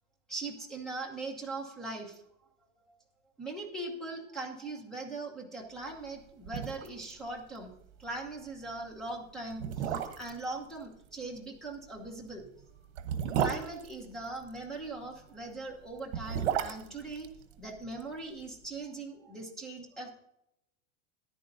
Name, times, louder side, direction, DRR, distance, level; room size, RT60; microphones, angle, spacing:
voice 1, 0.3-2.2 2.9-3.0 3.4-7.7 8.0-12.4 13.4-17.3 17.6-20.1, right 2 dB, ahead, 1 dB, 1.0 m, -40 dB
sound 1, 6.1-6.2 6.4-7.1 7.4-7.5 7.9-8.1 8.8-8.9 9.5-10.4 12.0-14.6 15.9-18.1 18.4-18.5, right 9 dB, 60° right, 1.2 m, -33 dB
14.0 x 11.0 x 2.7 m, 0.81 s
supercardioid pair, 175°, 37 cm